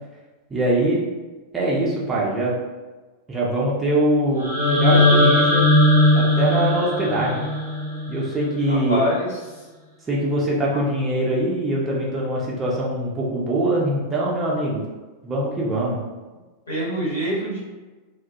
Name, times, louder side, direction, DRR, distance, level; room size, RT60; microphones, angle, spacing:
voice 1, 0.5-1.0 1.5-2.5 3.3-5.7 6.1-7.5 8.1-9.0 10.1-14.8 15.2-16.0, right 1 dB, 15° right, -5 dB, 0.6 m, -23 dB
sound 1, 4.4-8.4, left 1 dB, 75° right, 0.7 m, -18 dB
voice 2, 8.7-9.3 10.7-10.8 16.7-17.6, left 1 dB, 75° left, -7 dB, 1.2 m, -24 dB
2.2 x 2.0 x 2.8 m, 1.3 s
figure-of-eight pair, 90°, 0 cm